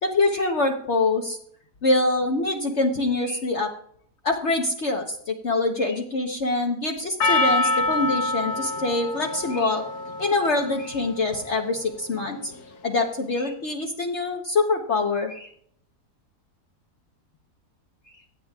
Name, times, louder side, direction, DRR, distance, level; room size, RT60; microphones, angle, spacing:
voice 1, 0.0-1.4 1.8-3.7 4.2-9.8 10.2-12.5 12.8-15.5, left 2 dB, 50° left, 2 dB, 1.1 m, -24 dB
Percussion, 7.2-12.2, left 2 dB, 75° left, 1.4 m, -27 dB
16.0 x 10.5 x 2.3 m, 0.65 s
omnidirectional pair, 1.7 m